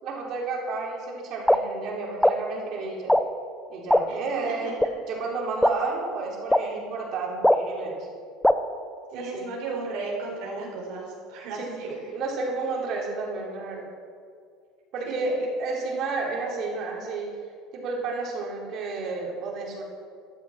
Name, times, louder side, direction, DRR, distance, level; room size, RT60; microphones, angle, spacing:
voice 1, 0.0-3.1 3.7-8.1 9.1-9.4 11.5-13.9 14.9-17.3 17.7-19.8, right 3 dB, 55° right, -2 dB, 4.2 m, -31 dB
sound 1, 1.5-1.6 2.2-2.3 3.1-3.2 3.9-4.0 4.8-4.9 5.6-5.7 6.5-6.6 7.4-7.6 8.4-8.5, equal, 5° left, 0.8 m, -17 dB
voice 2, 4.1-4.7 9.1-12.0 15.2-15.3, right 3 dB, 75° right, -2 dB, 4.2 m, -35 dB
13.5 x 11.5 x 6.1 m, 2.2 s
hypercardioid pair, 85°, 0 cm